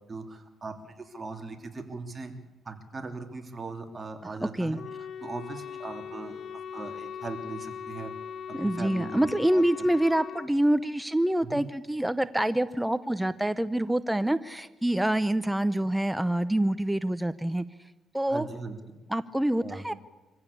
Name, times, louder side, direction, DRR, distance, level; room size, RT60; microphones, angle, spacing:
voice 1, 0.1-2.3 2.6-8.1 8.5-9.6 11.4-11.7 18.3-18.8 19.6-19.8, right 3 dB, 30° right, 5 dB, 3.2 m, -39 dB
Wind instrument woodwind instrument, 4.7-10.5, left 7 dB, 55° left, 1.0 m, -40 dB
voice 2, 8.5-17.6 18.1-18.5 19.1-19.9, right 1 dB, 5° right, 13 dB, 0.8 m, -26 dB
25.0 x 15.5 x 8.6 m, 1.1 s
cardioid pair, 90°, 0 cm